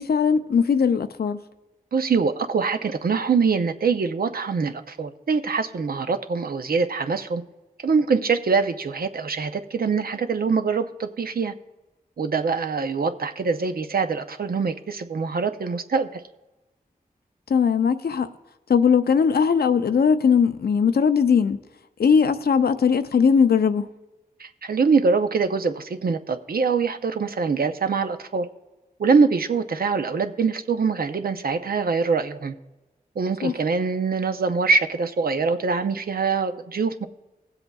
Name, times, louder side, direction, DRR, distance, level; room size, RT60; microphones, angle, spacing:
voice 1, 0.0-1.4 17.5-18.3 18.7-21.6 22.0-23.9 33.4-33.5, left 6 dB, 80° left, 0.5 m, -19 dB
voice 2, 1.9-7.4 7.8-11.5 12.2-16.2 24.4-28.5 29.0-32.5 33.2-37.1, right 5 dB, 70° right, 0.6 m, -24 dB
20.5 x 7.8 x 2.3 m
cardioid pair, 45°, 16 cm